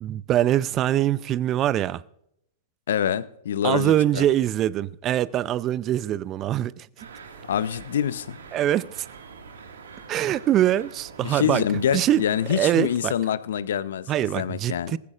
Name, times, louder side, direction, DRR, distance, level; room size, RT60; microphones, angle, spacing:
voice 1, 0.0-2.0 3.6-7.1 8.5-9.1 10.1-11.6 11.9-12.2 12.5-13.1 14.1-15.0, right 12 dB, 30° right, 0.5 m, -23 dB
voice 2, 2.9-4.2 7.5-8.4 11.2-15.0, left 9 dB, 65° left, 0.7 m, -26 dB
sound 1, 7.0-13.0, right 5 dB, 75° right, 1.9 m, -45 dB
19.0 x 15.0 x 2.5 m
figure-of-eight pair, 105°, 0 cm